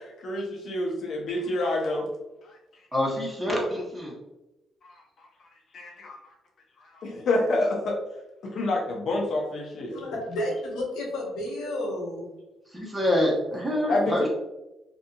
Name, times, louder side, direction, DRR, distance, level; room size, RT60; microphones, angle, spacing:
voice 1, 0.0-2.1 4.8-5.3 5.7-6.2 6.9-8.0 8.5-9.9 13.9-14.3, left 2 dB, 60° left, 0 dB, 0.5 m, -28 dB
voice 2, 2.9-4.2 12.7-14.3, left 1 dB, 10° right, -2 dB, 0.9 m, -26 dB
voice 3, 9.9-12.3, left 1 dB, 90° left, -1 dB, 0.8 m, -31 dB
2.7 x 2.4 x 2.3 m, 0.96 s
cardioid pair, 90°, 0 cm